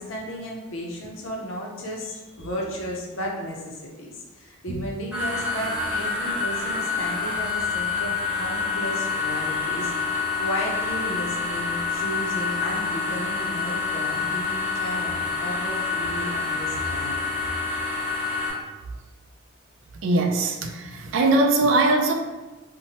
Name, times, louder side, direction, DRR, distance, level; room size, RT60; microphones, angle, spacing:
voice 1, 0.0-17.2, equal, 65° left, -2 dB, 0.6 m, -34 dB
sound 1, 5.1-18.5, left 4 dB, 5° right, 0.7 m, -27 dB
voice 2, 20.0-22.1, right 2 dB, 65° right, 3 dB, 0.3 m, -21 dB
2.8 x 2.1 x 2.8 m, 1.2 s
head